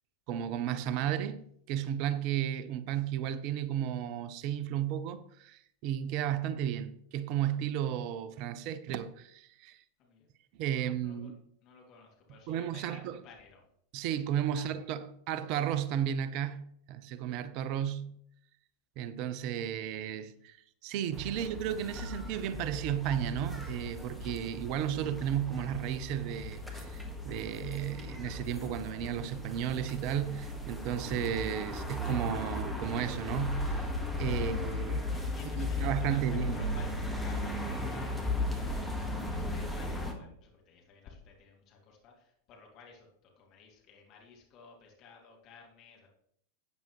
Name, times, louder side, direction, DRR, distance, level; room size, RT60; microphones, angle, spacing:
voice 1, 0.3-1.4 1.7-9.8 10.6-11.4 12.5-13.2 13.9-16.6 16.9-18.1 19.0-20.6 20.8-33.9 34.2-35.1 35.5-36.6, right 10 dB, 45° right, 0.7 m, -34 dB
voice 2, 10.7-11.3 11.6-13.7 14.0-14.1 14.5-14.6 21.3-21.4 34.4-36.9 37.2-46.1, left 5 dB, 40° left, 2.5 m, -54 dB
sound 1, 21.1-40.1, left 1 dB, ahead, 1.7 m, -36 dB
12.5 x 9.0 x 3.2 m
figure-of-eight pair, 90°, 0 cm